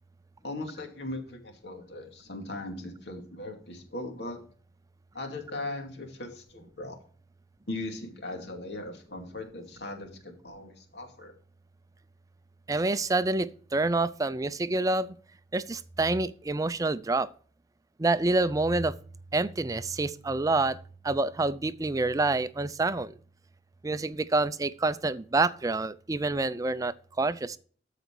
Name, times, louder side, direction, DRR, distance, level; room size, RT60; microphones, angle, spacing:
voice 1, 0.4-4.4 5.1-7.0 7.7-11.3, left 2 dB, 70° left, 2.4 m, -39 dB
voice 2, 12.7-15.2 15.5-17.3 18.0-19.0 19.3-20.8 21.0-23.1 23.8-27.6, right 2 dB, 20° right, 0.4 m, -27 dB
13.5 x 5.0 x 4.5 m
head